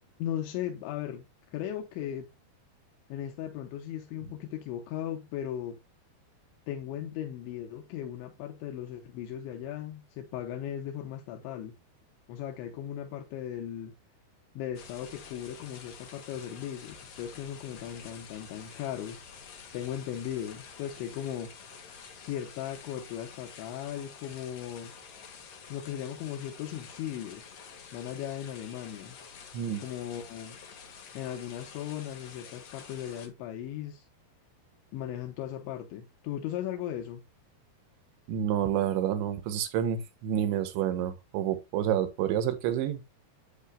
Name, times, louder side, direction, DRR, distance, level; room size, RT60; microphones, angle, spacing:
voice 1, 0.0-2.3 3.1-5.8 6.7-11.8 12.3-13.9 14.6-19.3 19.7-21.5 22.1-24.9 25.7-27.6 27.9-29.2 29.8-30.6 31.1-34.1 34.9-37.2, left 10 dB, 85° left, 3.4 m, -37 dB
sound 1, 14.7-33.3, left 6 dB, 50° left, 2.1 m, -49 dB
voice 2, 38.3-43.0, right 10 dB, 80° right, 3.6 m, -29 dB
11.0 x 8.6 x 2.2 m
omnidirectional pair, 5.1 m